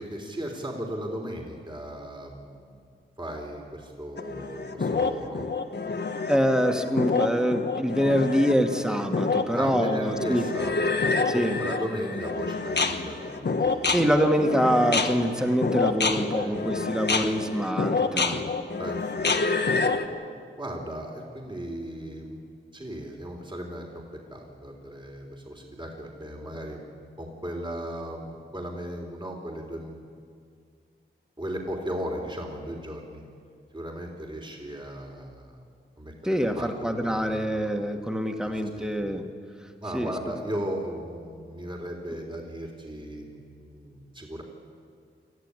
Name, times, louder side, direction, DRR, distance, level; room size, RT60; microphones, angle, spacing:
voice 1, 0.0-2.8 3.2-5.5 9.5-14.1 15.8-16.6 17.2-17.3 18.8-19.4 19.7-20.0 20.6-26.8 27.2-30.0 31.4-33.2 33.7-35.6 36.0-37.7 38.4-39.0 39.8-44.4, equal, 25° right, 1 dB, 3.6 m, -37 dB
sound 1, 4.2-20.0, left 4 dB, 55° left, 1.5 m, -28 dB
voice 2, 6.3-10.5 11.3-11.6 13.9-18.4 36.2-39.3 39.9-40.1, equal, 5° right, 3 dB, 2.2 m, -25 dB
26.5 x 14.5 x 9.9 m, 2.2 s
wide cardioid pair, 80°, 21 cm